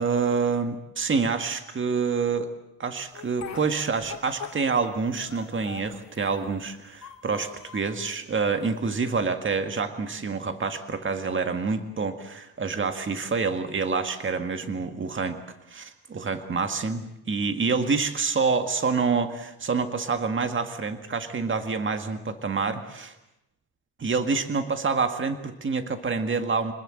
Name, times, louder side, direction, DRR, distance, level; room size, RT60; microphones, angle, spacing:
voice 1, 0.0-2.5 2.8-15.4 15.7-23.1 24.0-26.7, right 4 dB, 30° right, 7 dB, 1.9 m, -27 dB
Speech, 3.1-4.9 5.2-6.6 6.9-7.9 8.5-9.3, left 7 dB, 45° left, 4.8 m, -42 dB
26.5 x 20.0 x 7.8 m, 0.84 s
cardioid pair, 135°, 38 cm